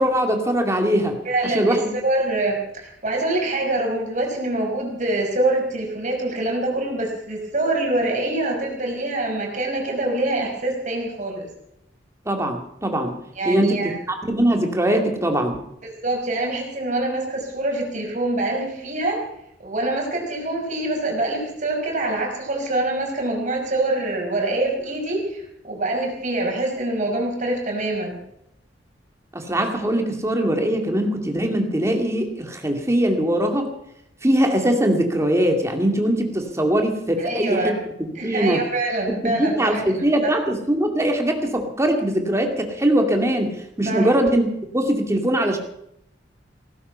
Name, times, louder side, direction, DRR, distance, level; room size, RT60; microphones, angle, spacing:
voice 1, 0.0-1.2 1.4-1.9 12.3-13.2 13.5-15.6 29.3-33.7 34.2-38.6 39.2-43.5 43.8-45.6, right 1 dB, 15° right, 4 dB, 2.4 m, -21 dB
voice 2, 1.3-1.8 2.0-11.5 13.4-13.9 15.8-19.2 19.6-28.2 37.2-37.7 38.2-39.8 40.2-40.3 43.9-44.1, right 2 dB, 45° right, 0 dB, 5.5 m, -25 dB
17.5 x 15.0 x 5.6 m, 0.77 s
head